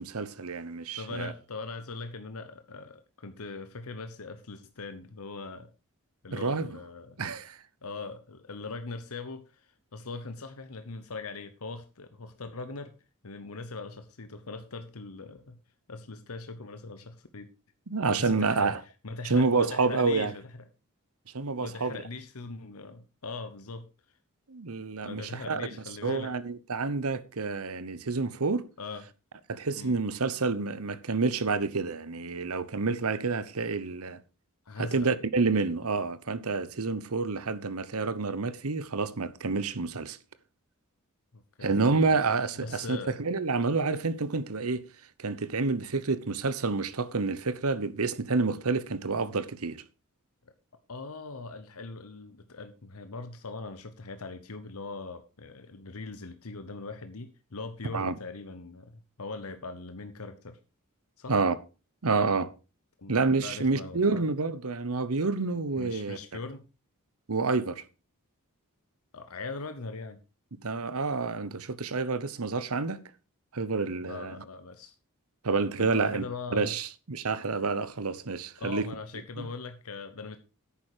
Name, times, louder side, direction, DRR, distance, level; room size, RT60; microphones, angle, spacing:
voice 1, 0.0-1.3 6.3-6.8 7.2-7.6 17.9-18.8 19.2-20.3 21.3-22.0 24.5-28.7 29.5-34.2 34.8-40.2 41.6-44.9 45.2-49.8 57.9-58.2 61.3-61.6 62.0-62.5 63.1-66.2 67.3-67.8 70.5-73.0 73.5-74.4 75.4-76.2 76.5-78.9 79.4-79.5, right 4 dB, 70° right, 1.0 m, -29 dB
voice 2, 0.9-5.7 6.2-7.2 7.8-12.9 13.2-15.6 15.9-17.5 18.2-18.7 19.0-20.4 21.6-23.9 25.0-26.3 28.8-29.0 29.7-30.0 34.7-35.1 41.3-42.2 42.6-43.1 50.9-60.6 61.2-61.4 63.0-64.2 65.8-66.7 69.1-70.2 74.0-74.9 75.8-76.7 78.6-80.4, left 3 dB, 70° left, 1.0 m, -41 dB
10.5 x 8.9 x 4.9 m
head